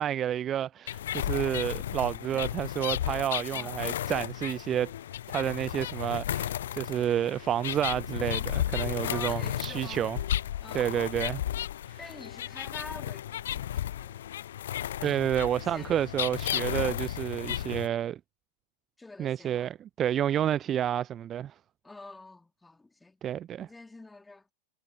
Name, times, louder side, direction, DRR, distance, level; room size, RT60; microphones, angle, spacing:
voice 1, 0.0-4.9 5.3-10.2 10.7-11.4 11.9-12.0 15.0-18.2 19.2-21.5 23.2-23.7, right 10 dB, 30° right, 0.4 m, -30 dB
sound 1, 0.9-17.9, left 11 dB, 60° left, 0.5 m, -34 dB
voice 2, 9.0-10.2 10.6-11.0 12.0-14.3 15.6-16.0 19.0-19.7 21.8-23.2 23.6-24.5, left 3 dB, 10° left, 2.2 m, -47 dB
figure-of-eight pair, 90°, 0 cm